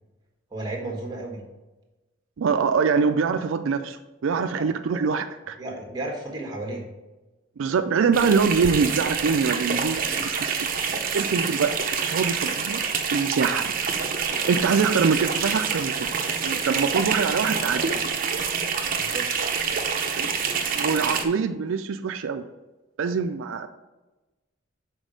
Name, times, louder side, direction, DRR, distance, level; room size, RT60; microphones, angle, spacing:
voice 1, 0.5-1.5 4.6-5.0 5.6-6.9 10.0-10.2 13.4-13.5 18.9-19.3, right 2 dB, 20° right, 1 dB, 1.3 m, -34 dB
voice 2, 2.4-5.6 7.6-10.7 11.1-12.8 13.1-13.6 14.5-16.1 16.4-18.1 20.2-20.3 20.7-22.4 23.0-23.7, right 5 dB, 85° right, 8 dB, 0.4 m, -24 dB
sound 1, 8.1-21.2, right 6 dB, 45° right, 0.7 m, -27 dB
6.2 x 4.1 x 5.1 m, 1.1 s
head